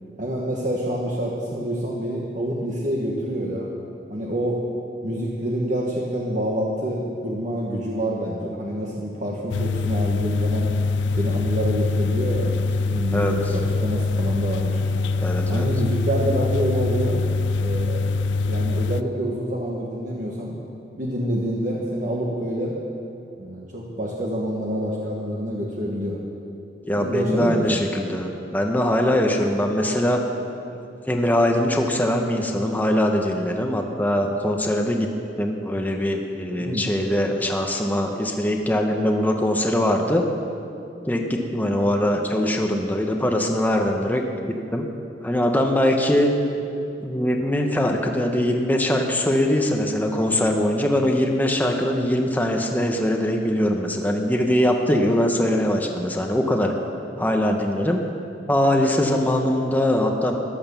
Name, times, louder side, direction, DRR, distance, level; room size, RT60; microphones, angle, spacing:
voice 1, 0.2-3.7 4.1-4.6 5.0-10.7 11.1-12.5 12.8-14.8 15.5-17.2 17.6-18.1 18.4-20.6 21.0-22.7 23.4-26.2 27.0-27.9 36.6-36.9, equal, 45° right, -3 dB, 1.4 m, -27 dB
sound 1, 9.5-19.0, left 3 dB, 75° left, 0.4 m, -24 dB
voice 2, 15.2-15.7 26.8-30.2 31.0-35.1 35.4-40.2 41.1-44.2 44.5-44.9 45.2-46.3 47.0-56.7 57.2-58.0 58.5-60.4, left 1 dB, 10° left, 2 dB, 0.9 m, -22 dB
14.5 x 11.0 x 7.0 m, 2.6 s
head